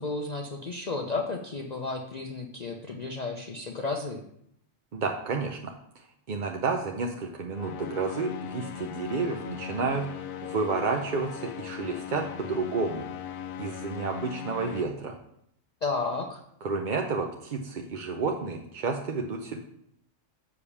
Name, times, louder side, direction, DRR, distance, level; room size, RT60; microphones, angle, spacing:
voice 1, 0.0-4.2 15.8-16.4, left 3 dB, 40° left, 2 dB, 0.7 m, -32 dB
voice 2, 4.9-5.7 6.3-10.1 10.4-13.1 13.6-15.2 16.6-19.6, right 4 dB, 50° right, 2 dB, 0.6 m, -30 dB
sound 1, 7.5-14.8, left 9 dB, 80° left, 1.1 m, -39 dB
6.8 x 5.1 x 7.0 m, 0.73 s
omnidirectional pair, 1.4 m